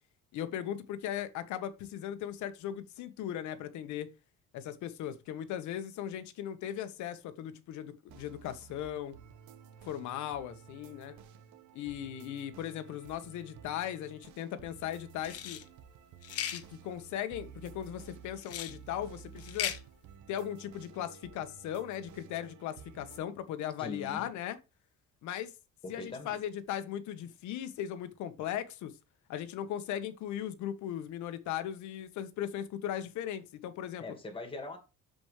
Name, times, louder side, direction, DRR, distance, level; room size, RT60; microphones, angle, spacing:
voice 1, 0.3-4.1 4.5-9.2 9.8-11.2 11.7-15.6 16.5-19.8 20.3-24.6 25.2-25.5 25.9-29.0 29.3-34.0, left 10 dB, 80° left, 1.4 m, -38 dB
sound 1, 8.1-23.2, right 8 dB, 80° right, 1.2 m, -53 dB
sound 2, 15.2-15.6 16.2-16.6 18.4-18.7 19.4-19.8, left 11 dB, 55° left, 1.2 m, -36 dB
voice 2, 23.8-24.3 25.8-26.4 34.0-34.8, left 3 dB, 20° left, 2.0 m, -42 dB
13.0 x 5.2 x 3.3 m
cardioid pair, 170°, 29 cm